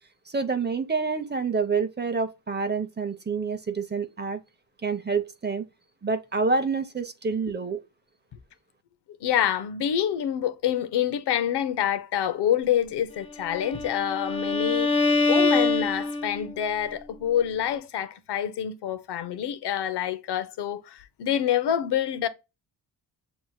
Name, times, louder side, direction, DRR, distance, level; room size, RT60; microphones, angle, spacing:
voice 1, 0.3-4.4 4.8-5.7 6.0-7.8, right 4 dB, 25° right, 0.6 m, -27 dB
voice 2, 9.1-14.9 15.3-22.3, left 10 dB, 70° left, 0.6 m, -27 dB
Bowed string instrument, 13.4-16.6, left 3 dB, 15° left, 0.9 m, -24 dB
6.3 x 3.0 x 2.2 m
cardioid pair, 55°, 42 cm